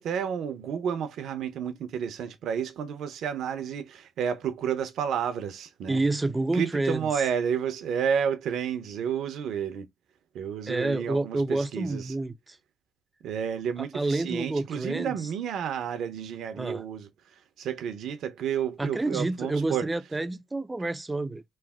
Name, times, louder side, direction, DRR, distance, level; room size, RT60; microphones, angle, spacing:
voice 1, 0.0-6.0 6.5-9.9 10.3-12.1 13.2-19.9, right 8 dB, 75° right, 0.7 m, -31 dB
voice 2, 5.9-7.1 10.7-12.6 13.9-15.2 16.6-16.8 18.8-21.4, right 2 dB, 15° right, 0.4 m, -29 dB
3.2 x 2.1 x 3.5 m
cardioid pair, 90°, 0 cm